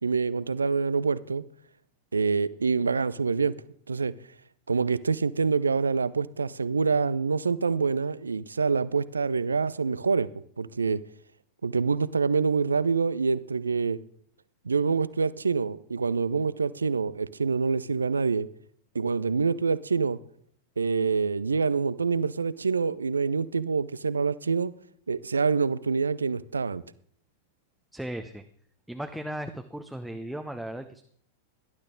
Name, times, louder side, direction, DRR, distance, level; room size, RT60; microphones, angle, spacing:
voice 1, 0.0-1.4 2.1-3.6 3.9-4.2 4.7-10.3 10.6-11.0 11.6-14.0 14.6-18.5 18.9-20.2 20.8-24.7 25.1-26.8, right 5 dB, 75° right, 0.5 m, -26 dB
voice 2, 27.9-28.4 28.9-31.0, right 1 dB, ahead, 0.8 m, -36 dB
18.5 x 11.5 x 3.8 m
figure-of-eight pair, 90°, 0 cm